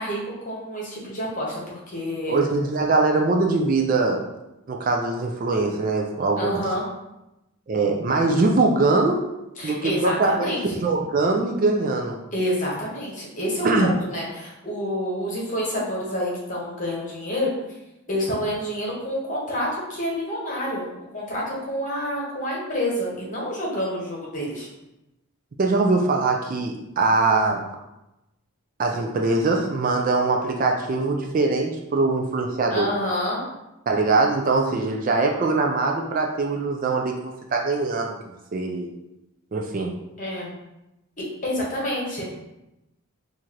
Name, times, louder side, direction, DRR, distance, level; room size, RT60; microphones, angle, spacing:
voice 1, 0.0-2.4 6.4-6.8 9.6-10.6 12.3-17.5 18.1-20.8 21.1-24.7 32.7-33.4 40.2-40.5 41.2-42.3, equal, 35° left, -4 dB, 1.0 m, -28 dB
voice 2, 2.3-4.2 4.7-6.6 7.7-9.2 9.6-12.2 13.6-13.9 25.6-27.6 28.8-32.9 33.9-37.1 37.5-38.2 38.5-38.9 39.5-39.9, right 3 dB, 40° right, 2 dB, 0.3 m, -22 dB
4.6 x 2.5 x 2.8 m, 0.93 s
head